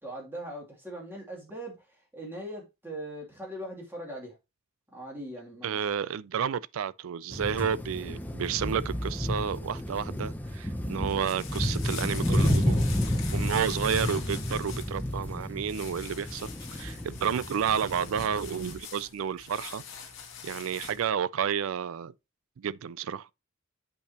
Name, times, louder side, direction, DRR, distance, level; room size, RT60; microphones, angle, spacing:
voice 1, 0.0-4.4 4.9-5.8, right 1 dB, 10° right, 2.7 m, -40 dB
voice 2, 5.6-12.9 13.3-19.8 20.4-22.1 22.6-23.3, right 7 dB, 70° right, 0.4 m, -31 dB
sound 1, 7.3-18.8, left 1 dB, 10° left, 0.7 m, -31 dB
sound 2, 11.0-21.1, left 7 dB, 60° left, 2.0 m, -44 dB
8.5 x 5.5 x 2.9 m
head